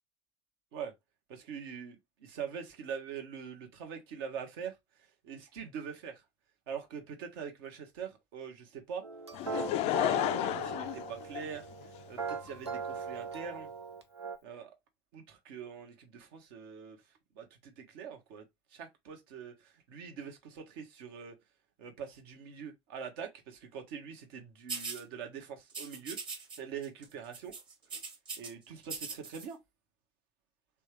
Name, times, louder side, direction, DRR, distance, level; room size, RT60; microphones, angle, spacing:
voice 1, 1.3-4.8 5.2-6.2 6.7-9.0 9.5-11.7 12.1-13.7 14.4-14.7 15.1-17.0 17.3-18.5 18.7-21.4 21.8-26.2 26.6-27.5 28.4-29.6, right 7 dB, 65° right, 1.1 m, -43 dB
sound 1, 9.0-14.4, right 5 dB, 85° right, 0.6 m, -40 dB
Laughter / Crowd, 9.3-12.0 12.7-12.8, left 13 dB, 50° left, 0.4 m, -32 dB
sound 2, 24.7-25.0 25.7-26.6 26.8-27.1 27.3-28.5 28.8-29.5, right 4 dB, 35° right, 1.4 m, -40 dB
3.4 x 3.4 x 3.0 m
figure-of-eight pair, 60°, 14 cm